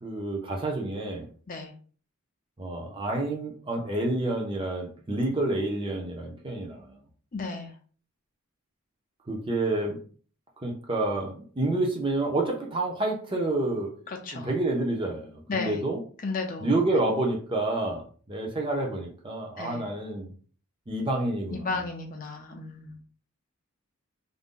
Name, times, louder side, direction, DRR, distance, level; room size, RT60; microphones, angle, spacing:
voice 1, 0.0-1.3 2.6-7.0 9.3-10.0 10.6-13.9 14.3-16.0 16.6-20.3 20.9-21.7, right 2 dB, 25° right, 1 dB, 0.5 m, -29 dB
voice 2, 7.3-7.7 14.1-14.5 15.5-15.8 16.2-16.7 19.6-19.8 21.5-22.9, left 3 dB, 40° left, 3 dB, 0.5 m, -33 dB
2.5 x 2.1 x 3.6 m, 0.42 s
head